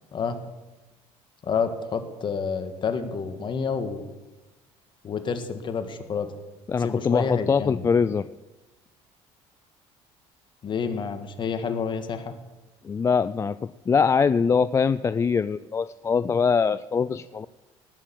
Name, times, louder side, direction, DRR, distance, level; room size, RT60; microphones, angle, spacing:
voice 1, 1.4-4.1 5.0-6.3 6.8-7.8 10.6-12.3, left 5 dB, 40° left, 8 dB, 1.7 m, -29 dB
voice 2, 6.7-8.3 12.8-13.6 13.9-17.5, left 5 dB, 25° left, 15 dB, 0.3 m, -23 dB
18.5 x 6.7 x 7.6 m, 1.1 s
cardioid pair, 110°, 12 cm